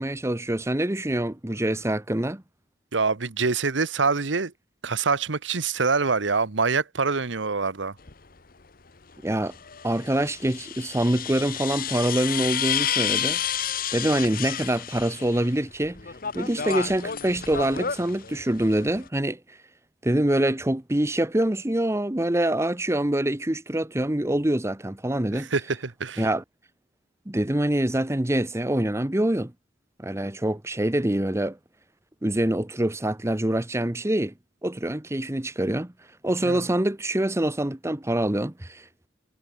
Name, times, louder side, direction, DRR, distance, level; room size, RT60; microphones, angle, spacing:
voice 1, 0.0-2.4 9.2-9.5 9.8-13.4 13.9-16.0 16.3-19.4 20.0-25.5 26.2-26.4 27.3-29.5 30.0-31.6 32.2-34.3 34.6-35.9 36.2-38.8, right 1 dB, 15° right, 0.9 m, -25 dB
voice 2, 2.9-4.5 4.8-7.9 25.3-26.2 36.4-36.6, right 4 dB, 70° right, 1.1 m, -25 dB
sound 1, 8.0-8.1 9.5-15.5 15.8-19.1, left 9 dB, 50° left, 1.2 m, -30 dB
head